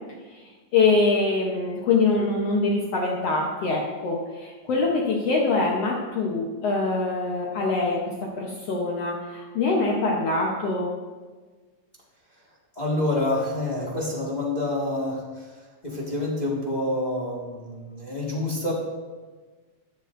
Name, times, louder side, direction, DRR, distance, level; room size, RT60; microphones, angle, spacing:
voice 1, 0.7-10.9, left 3 dB, 65° left, -1 dB, 1.8 m, -24 dB
voice 2, 12.7-15.5 15.8-18.7, left 2 dB, 20° left, -5 dB, 1.2 m, -27 dB
14.5 x 9.5 x 2.6 m, 1.3 s
omnidirectional pair, 3.4 m